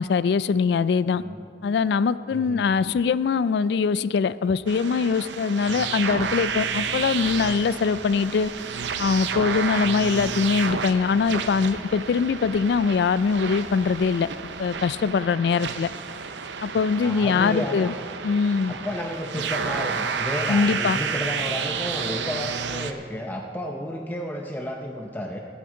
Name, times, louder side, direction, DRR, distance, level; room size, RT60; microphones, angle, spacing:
voice 1, 0.0-1.2 1.6-8.5 9.0-14.3 14.6-15.9 16.6-17.9 18.2-18.7 20.5-21.0, left 5 dB, 65° left, 16 dB, 0.3 m, -22 dB
voice 2, 1.1-1.5 2.3-2.7 5.7-6.0 9.8-10.0 17.0-17.9 18.7-25.4, left 1 dB, 10° left, 1 dB, 0.6 m, -32 dB
sound 1, 4.7-22.9, right 6 dB, 85° right, 0.7 m, -31 dB
sound 2, 6.2-15.1, left 1 dB, 45° left, 1.6 m, -49 dB
22.5 x 8.7 x 3.8 m, 2.3 s
head